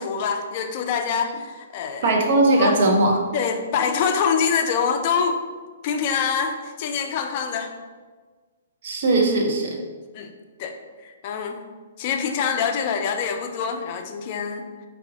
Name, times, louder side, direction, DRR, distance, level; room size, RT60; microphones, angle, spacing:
voice 1, 0.0-2.1 2.6-2.8 3.3-5.4 5.8-7.7 10.1-10.3 10.6-10.8 11.2-11.6 12.0-14.7, left 6 dB, 40° left, 5 dB, 0.4 m, -25 dB
voice 2, 2.0-3.2 8.8-9.8, right 2 dB, 55° right, 1 dB, 0.7 m, -19 dB
4.4 x 2.4 x 3.5 m, 1.4 s
figure-of-eight pair, 120°, 0 cm